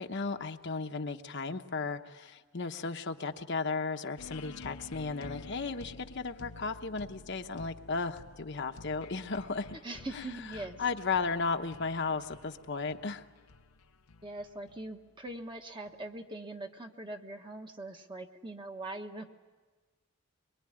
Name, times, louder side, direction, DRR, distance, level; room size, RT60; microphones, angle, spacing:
voice 1, 0.0-9.7 10.1-10.2 10.8-13.2, left 4 dB, 50° left, 6 dB, 1.0 m, -35 dB
sound 1, 4.2-15.9, left 3 dB, 85° left, 0.8 m, -51 dB
voice 2, 9.8-10.9 14.2-19.2, right 2 dB, 20° right, 4 dB, 1.3 m, -42 dB
24.0 x 23.0 x 9.9 m, 1.3 s
head